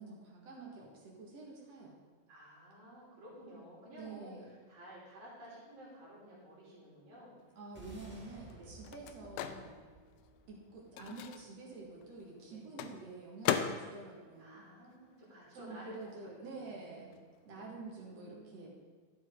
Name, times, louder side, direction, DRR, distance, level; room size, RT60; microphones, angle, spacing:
voice 1, 0.0-2.0 4.0-4.5 7.6-9.8 10.5-14.6 15.5-17.1 17.4-18.7, right 3 dB, 55° right, -3 dB, 2.8 m, -48 dB
voice 2, 2.3-4.3 4.7-7.4 8.5-8.7 12.5-12.6 14.4-17.2 17.5-18.7, equal, 80° right, -9 dB, 4.9 m, -53 dB
Microwave oven, 7.5-15.6 15.9-17.8, left 9 dB, 85° left, 1.7 m, -41 dB
sound 1, 7.7-12.2, right 3 dB, 10° right, 0.7 m, -56 dB
12.0 x 7.8 x 3.9 m, 1.5 s
omnidirectional pair, 3.9 m